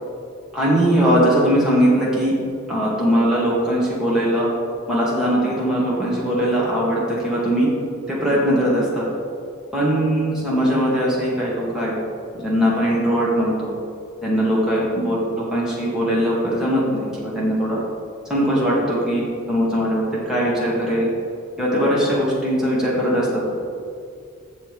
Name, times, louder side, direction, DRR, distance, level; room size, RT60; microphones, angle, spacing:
voice 1, 0.5-2.4 2.7-4.5 4.9-7.7 8.1-9.0 9.7-11.9 12.3-13.7 14.2-17.8 18.3-21.1 21.6-23.4, equal, 5° right, -7 dB, 1.7 m, -20 dB
7.2 x 6.7 x 4.8 m, 2.3 s
head